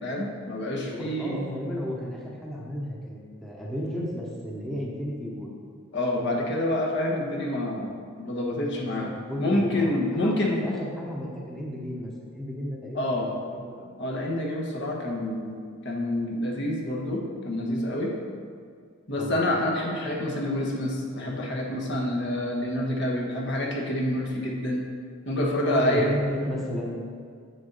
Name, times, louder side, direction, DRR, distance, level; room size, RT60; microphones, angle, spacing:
voice 1, 0.0-1.4 5.9-9.1 9.4-10.6 12.9-13.3 14.0-15.6 15.8-18.1 19.1-24.8 25.2-26.1, left 1 dB, 55° left, -1 dB, 1.2 m, -27 dB
voice 2, 0.9-5.5 8.8-13.0 13.4-13.9 19.2-19.4 25.6-27.2, equal, ahead, -5 dB, 0.9 m, -33 dB
8.0 x 6.6 x 4.0 m, 2.1 s
head